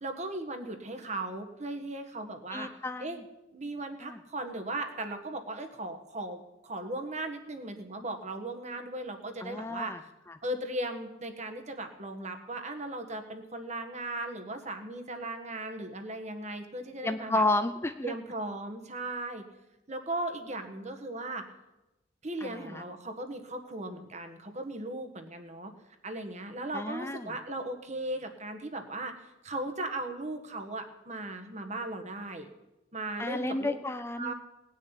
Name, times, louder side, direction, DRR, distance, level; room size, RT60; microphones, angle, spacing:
voice 1, 0.0-2.7 3.0-3.2 3.5-6.4 6.7-9.9 10.4-17.4 18.0-19.4 19.9-21.4 22.2-25.7 26.0-29.1 29.4-32.4 32.9-33.8 34.2-34.3, right 2 dB, 35° right, 6 dB, 1.6 m, -37 dB
voice 2, 2.5-3.0 4.0-4.2 9.4-10.0 17.0-18.1 22.4-22.8 26.7-27.3 33.2-34.3, left 2 dB, 15° left, 8 dB, 0.5 m, -31 dB
18.5 x 6.5 x 9.8 m, 0.99 s
head